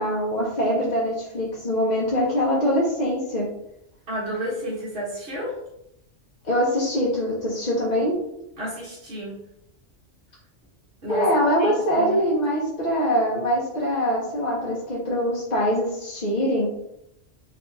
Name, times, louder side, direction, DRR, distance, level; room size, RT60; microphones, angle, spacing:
voice 1, 0.0-3.5 6.4-8.2 11.1-16.7, equal, 40° left, -6 dB, 0.9 m, -23 dB
voice 2, 4.1-5.5 8.6-9.4 11.0-11.3 11.6-12.2, equal, 55° right, -7 dB, 1.5 m, -31 dB
4.2 x 2.8 x 3.4 m, 0.82 s
omnidirectional pair, 1.3 m